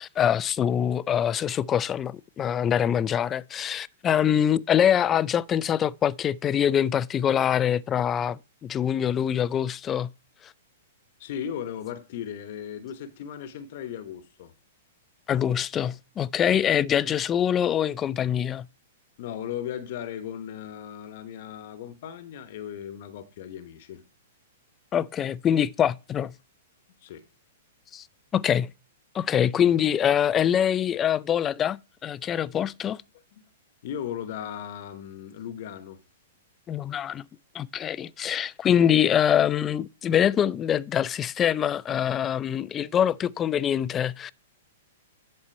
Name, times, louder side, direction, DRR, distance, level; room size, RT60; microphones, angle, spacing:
voice 1, 0.0-10.1 15.3-18.7 24.9-26.3 27.9-28.0 28.3-28.7 29.1-33.0 36.7-37.2 37.5-44.3, left 9 dB, 25° left, 0.4 m, -24 dB
voice 2, 11.2-14.5 19.2-24.0 27.0-27.2 33.3-33.4 33.8-36.0, left 9 dB, 55° left, 1.0 m, -37 dB
11.0 x 4.3 x 4.4 m
hypercardioid pair, 125°, 0 cm